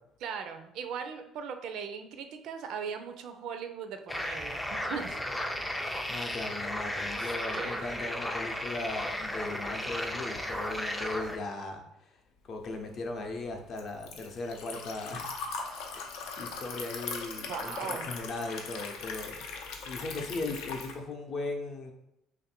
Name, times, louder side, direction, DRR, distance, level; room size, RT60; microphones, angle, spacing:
voice 1, 0.2-5.2 7.1-7.8 15.7-15.8 17.5-18.1, right 6 dB, 65° right, 7 dB, 0.4 m, -39 dB
sound 1, 4.1-11.4, left 1 dB, 5° left, 0.3 m, -34 dB
voice 2, 6.1-12.2 12.4-15.3 15.9-16.1 16.4-21.9, left 2 dB, 45° left, 3 dB, 0.6 m, -38 dB
Liquid, 12.7-21.0, left 4 dB, 85° left, 0.6 m, -40 dB
3.3 x 2.6 x 4.2 m, 0.82 s
cardioid pair, 135°, 0 cm